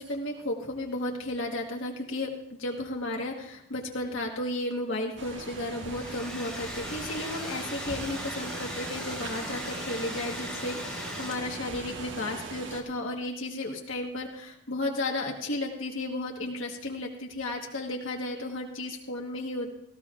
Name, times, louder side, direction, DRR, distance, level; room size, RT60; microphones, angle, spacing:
voice 1, 0.0-19.7, left 2 dB, 70° left, 0 dB, 1.4 m, -33 dB
sound 1, 5.2-12.8, right 3 dB, 65° right, 1.4 m, -39 dB
Domestic sounds home sounds, 5.7-11.7, left 1 dB, 5° left, 1.4 m, -40 dB
18.0 x 14.5 x 2.5 m, 0.75 s
head